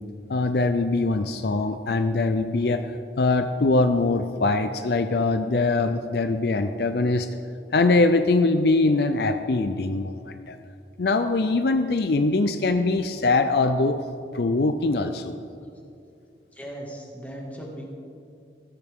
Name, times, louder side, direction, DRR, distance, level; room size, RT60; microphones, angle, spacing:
voice 1, 0.3-2.9 3.2-7.3 7.7-10.6 11.0-14.0 14.3-15.4, left 3 dB, 65° left, 9 dB, 0.5 m, -22 dB
voice 2, 16.5-17.9, right 1 dB, 10° left, -2 dB, 2.0 m, -38 dB
15.5 x 13.0 x 3.7 m, 2.4 s
head